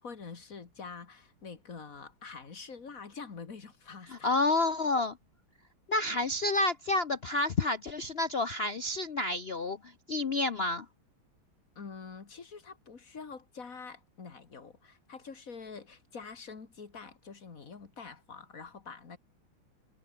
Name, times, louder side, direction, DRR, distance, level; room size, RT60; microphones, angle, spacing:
voice 1, 0.0-4.3 6.0-6.1 11.8-19.2, left 5 dB, 40° left, 2.3 m, -46 dB
voice 2, 4.1-5.2 5.9-10.9, left 2 dB, 60° left, 0.6 m, -29 dB
omnidirectional pair, 2.3 m